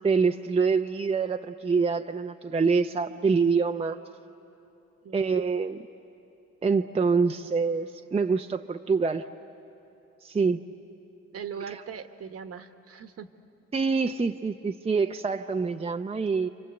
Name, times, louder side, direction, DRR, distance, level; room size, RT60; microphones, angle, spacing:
voice 1, 0.0-4.0 5.1-5.9 6.6-9.3 10.2-10.6 11.7-11.8 13.7-16.5, right 5 dB, 20° right, 5 dB, 0.6 m, -25 dB
voice 2, 11.3-13.3, right 7 dB, 50° right, 9 dB, 1.3 m, -40 dB
28.5 x 25.0 x 8.1 m, 2.9 s
cardioid pair, 90°, 30 cm